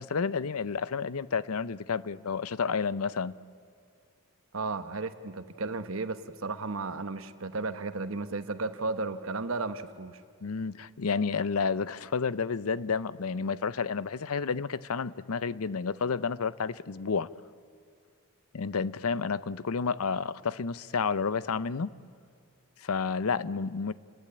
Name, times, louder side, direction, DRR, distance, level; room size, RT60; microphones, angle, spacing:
voice 1, 0.0-3.3 10.4-17.3 18.5-21.9 22.8-23.9, left 5 dB, 90° left, 0.6 m, -30 dB
voice 2, 4.5-10.2, right 3 dB, 70° right, 1.1 m, -34 dB
29.5 x 20.5 x 8.8 m
head